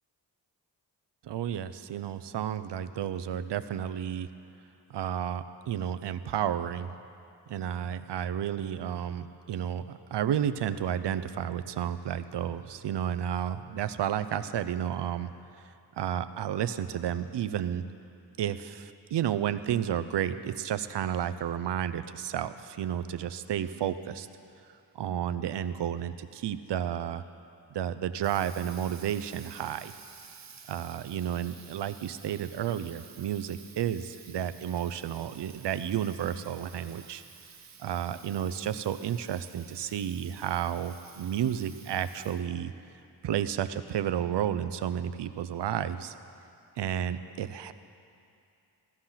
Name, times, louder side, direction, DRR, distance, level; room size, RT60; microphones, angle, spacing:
voice 1, 1.2-4.3 4.9-7.0 7.5-15.3 16.0-17.8 18.4-24.3 24.9-27.2 27.7-30.0 30.7-37.2 37.8-42.7 43.2-46.1 46.8-47.7, right 10 dB, 80° right, 12 dB, 0.7 m, -32 dB
Water tap faucet, 27.9-42.6, right 6 dB, 40° right, 0.9 m, -52 dB
16.5 x 14.0 x 5.8 m, 2.6 s
wide cardioid pair, 150°, 41 cm